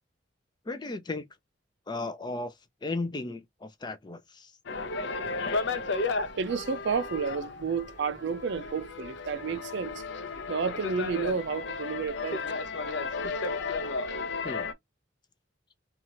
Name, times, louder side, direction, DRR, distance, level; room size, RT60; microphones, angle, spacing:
voice 1, 0.7-1.3 1.9-4.5 14.4-14.7, left 2 dB, 25° left, 0.4 m, -35 dB
sound 1, 4.7-14.7, left 3 dB, 65° left, 0.6 m, -34 dB
voice 2, 6.4-10.0 10.5-12.4, right 5 dB, 65° right, 0.5 m, -31 dB
2.7 x 2.4 x 2.9 m
head